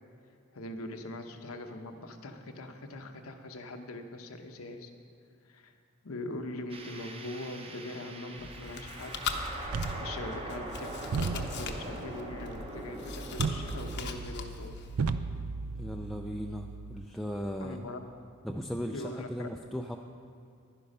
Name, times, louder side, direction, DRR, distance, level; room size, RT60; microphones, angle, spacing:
voice 1, 0.5-4.9 5.4-5.8 6.0-9.2 9.6-14.8 17.6-18.0 18.9-19.5, left 2 dB, 75° left, 5 dB, 0.9 m, -42 dB
sound 1, 6.7-14.2, right 1 dB, 25° right, 0.9 m, -43 dB
Chewing mastication, 8.4-15.0, left 4 dB, 55° left, 0.8 m, -40 dB
sound 2, 9.7-17.1, right 4 dB, 85° right, 0.5 m, -37 dB
voice 2, 15.7-17.8 18.4-20.0, equal, ahead, 1 dB, 0.4 m, -37 dB
11.0 x 10.0 x 5.4 m, 2.3 s
head